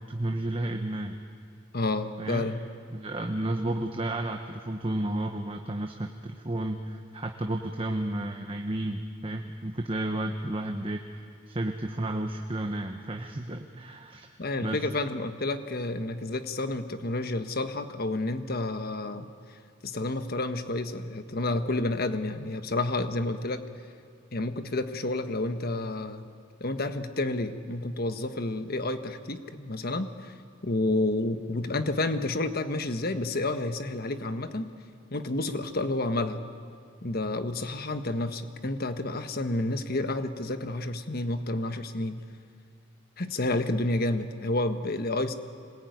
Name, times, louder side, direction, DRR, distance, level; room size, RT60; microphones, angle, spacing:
voice 1, 0.1-1.2 2.2-2.5 2.9-11.0 11.5-14.3 14.6-14.8, right 1 dB, 30° right, 4 dB, 1.2 m, -32 dB
voice 2, 1.7-2.6 14.4-19.3 19.8-23.6 24.3-26.3 26.6-30.3 30.6-34.7 35.1-36.5 37.0-42.2 43.2-45.3, left 2 dB, 50° left, 9 dB, 1.4 m, -30 dB
25.5 x 20.5 x 9.4 m, 2.3 s
head